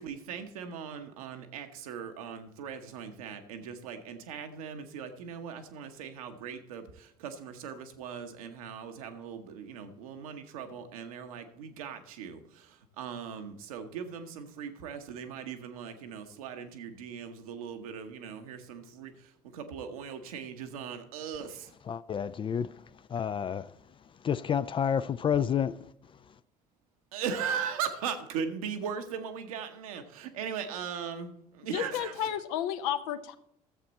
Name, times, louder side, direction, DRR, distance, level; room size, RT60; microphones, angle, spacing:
voice 1, 0.0-21.7 27.1-32.3, right 7 dB, 70° right, 1.0 m, -39 dB
voice 2, 21.9-22.7 23.1-23.7 24.2-25.8, left 8 dB, 25° left, 0.4 m, -29 dB
voice 3, 31.7-33.4, left 10 dB, 65° left, 0.7 m, -32 dB
13.5 x 7.6 x 4.1 m
figure-of-eight pair, 55°, 19 cm